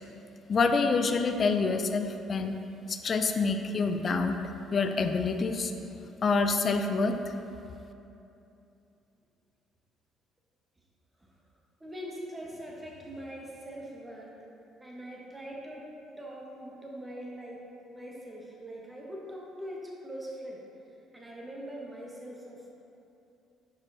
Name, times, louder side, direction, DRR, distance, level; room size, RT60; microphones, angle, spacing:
voice 1, 0.5-2.6 2.9-4.4 4.7-5.7 6.2-7.3, left 4 dB, 40° left, 6 dB, 0.4 m, -27 dB
voice 2, 11.8-14.3 14.8-15.9 16.2-20.6 21.1-22.8, equal, 15° right, -2 dB, 1.4 m, -42 dB
11.0 x 4.8 x 2.9 m, 2.8 s
figure-of-eight pair, 50°, 0 cm